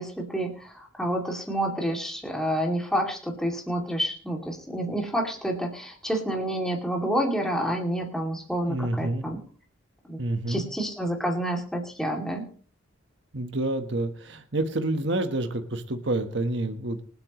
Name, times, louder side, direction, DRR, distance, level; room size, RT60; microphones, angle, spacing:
voice 1, 0.0-9.4 10.0-10.2 10.5-12.5, right 1 dB, 5° left, 0 dB, 2.6 m, -29 dB
voice 2, 8.6-9.3 10.2-10.7 13.3-17.0, right 2 dB, 60° right, 7 dB, 1.3 m, -28 dB
25.5 x 8.6 x 3.1 m, 0.42 s
head